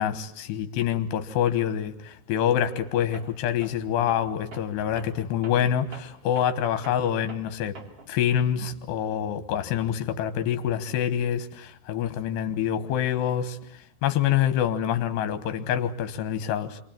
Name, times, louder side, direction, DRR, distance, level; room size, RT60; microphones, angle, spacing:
voice 1, 0.0-7.8 8.1-13.6 14.0-16.8, left 9 dB, 75° left, 10 dB, 3.5 m, -26 dB
Tools, 2.6-2.9 3.1-8.2, right 3 dB, 35° right, 3.4 m, -46 dB
27.5 x 24.0 x 9.1 m, 0.71 s
omnidirectional pair, 5.1 m